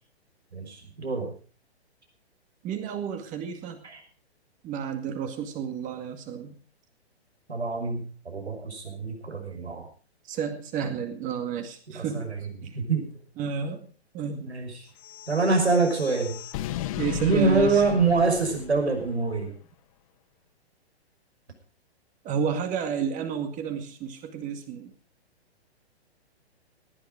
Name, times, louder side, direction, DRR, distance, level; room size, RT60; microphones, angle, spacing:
voice 1, 0.5-1.3 3.8-4.0 7.5-9.9 11.9-12.4 12.7-13.1 14.4-14.9 15.3-16.4 17.2-19.5, right 3 dB, 80° right, 4 dB, 5.7 m, -25 dB
voice 2, 2.6-3.8 4.6-6.5 10.3-12.3 12.6-12.7 13.4-13.9 14.1-14.5 17.0-17.8 22.2-24.9, right 7 dB, 25° right, 7 dB, 2.1 m, -31 dB
sound 1, 15.0-19.3, left 14 dB, 30° left, 0.9 m, -36 dB
18.0 x 11.0 x 5.0 m, 0.41 s
figure-of-eight pair, 120°, 33 cm